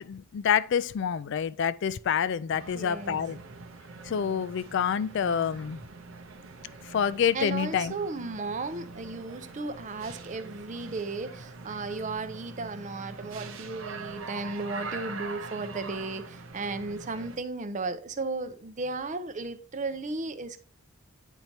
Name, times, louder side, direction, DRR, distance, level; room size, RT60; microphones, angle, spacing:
voice 1, 0.0-3.4 4.0-5.8 6.8-7.9, left 7 dB, 60° left, 0.3 m, -27 dB
sound 1, 2.5-17.4, right 4 dB, 75° right, 0.8 m, -43 dB
voice 2, 2.7-3.2 7.3-20.6, right 3 dB, 35° right, 0.5 m, -35 dB
9.0 x 4.5 x 2.7 m
head